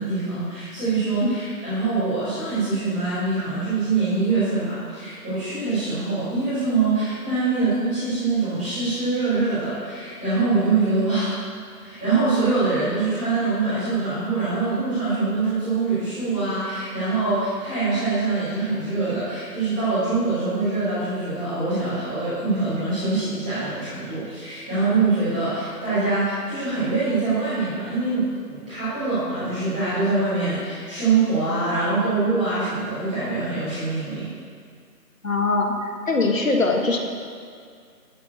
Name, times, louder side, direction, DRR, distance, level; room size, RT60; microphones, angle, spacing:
voice 1, 0.0-11.4 11.8-34.3, right 3 dB, 5° right, -17 dB, 1.7 m, -24 dB
voice 2, 35.2-37.0, left 3 dB, 55° left, 2 dB, 1.4 m, -22 dB
11.5 x 4.3 x 8.1 m, 2.2 s
figure-of-eight pair, 170°, 49 cm